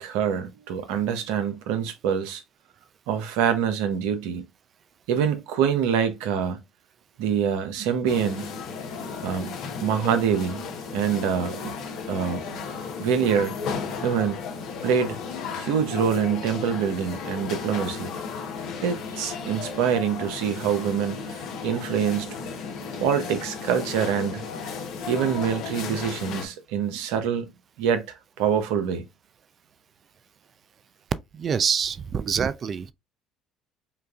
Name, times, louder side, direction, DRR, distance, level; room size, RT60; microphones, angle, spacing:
voice 1, 0.0-2.4 3.1-4.4 5.1-6.6 7.2-8.5 9.2-9.5 9.8-10.6 10.9-11.7 12.1-12.5 13.0-13.5 14.0-14.4 14.8-15.2 15.5-18.1 18.8-22.4 23.0-24.5 25.1-27.5 27.8-29.0, right 7 dB, 75° right, 0.7 m, -25 dB
sound 1, 8.1-26.5, left 5 dB, 70° left, 1.0 m, -34 dB
voice 2, 31.3-32.9, right 7 dB, 45° right, 0.4 m, -26 dB
5.5 x 2.4 x 2.3 m
hypercardioid pair, 65°, 0 cm